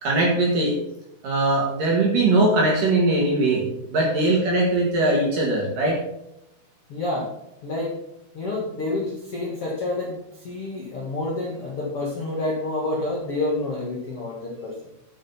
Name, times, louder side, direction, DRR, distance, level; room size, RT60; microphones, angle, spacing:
voice 1, 0.0-0.8 1.2-3.6 3.9-6.0, right 2 dB, 55° right, -2 dB, 2.9 m, -20 dB
voice 2, 6.9-7.3 7.6-8.0 8.3-14.7, left 2 dB, 50° left, -4 dB, 1.7 m, -28 dB
10.5 x 6.5 x 5.7 m, 0.84 s
omnidirectional pair, 5.8 m